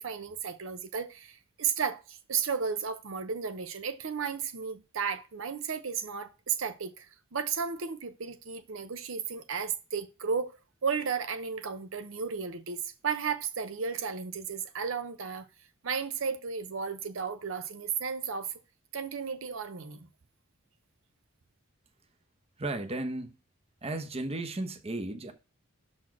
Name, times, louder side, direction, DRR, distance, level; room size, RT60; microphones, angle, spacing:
voice 1, 0.0-7.1 7.3-10.6 10.8-15.5 15.8-18.5 18.9-20.1, right 6 dB, 70° right, 0.7 m, -34 dB
voice 2, 22.6-23.4 23.8-25.3, right 2 dB, 30° right, 0.8 m, -34 dB
6.0 x 4.3 x 5.8 m
head